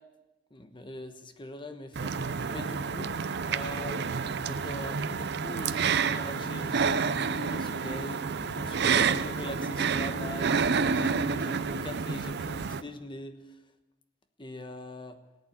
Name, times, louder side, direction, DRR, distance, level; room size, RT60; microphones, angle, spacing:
voice 1, 0.5-2.1 2.5-3.1 3.5-13.3 14.4-15.2, left 1 dB, 25° left, 8 dB, 1.1 m, -42 dB
sound 1, 2.0-12.8, right 5 dB, 55° right, 0.6 m, -29 dB
18.0 x 8.7 x 8.7 m, 1.1 s
head